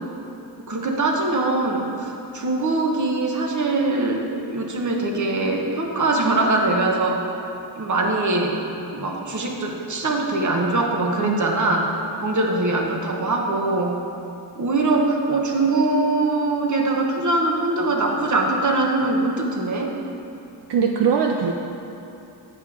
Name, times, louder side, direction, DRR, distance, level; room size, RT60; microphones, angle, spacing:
voice 1, 0.6-4.2 4.5-7.2 7.8-8.6 8.9-11.9 12.2-14.0 14.5-19.9, right 2 dB, 45° right, 1 dB, 1.2 m, -22 dB
voice 2, 20.7-21.5, right 6 dB, 75° right, 2 dB, 0.6 m, -21 dB
9.4 x 7.5 x 4.8 m, 2.8 s
wide cardioid pair, 130°, 42 cm